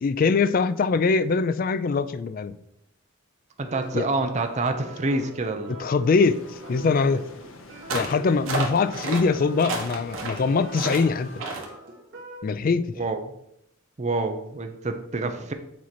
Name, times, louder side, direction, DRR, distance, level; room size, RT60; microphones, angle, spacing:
voice 1, 0.0-2.5 3.9-4.1 5.8-7.2 7.9-11.3 12.4-12.9, left 4 dB, 45° left, 14 dB, 0.3 m, -23 dB
voice 2, 3.6-5.8 13.0-13.2 14.0-15.5, right 2 dB, 35° right, 6 dB, 0.5 m, -27 dB
sound 1, 3.7-12.4, right 1 dB, 60° right, 1.8 m, -43 dB
sound 2, 6.2-11.4, left 2 dB, 75° left, 0.9 m, -47 dB
sound 3, 7.9-8.2 8.5-9.2 9.6-10.4 10.7-11.0 11.4-11.7, right 3 dB, 75° right, 1.4 m, -30 dB
7.5 x 2.8 x 5.9 m, 0.78 s
head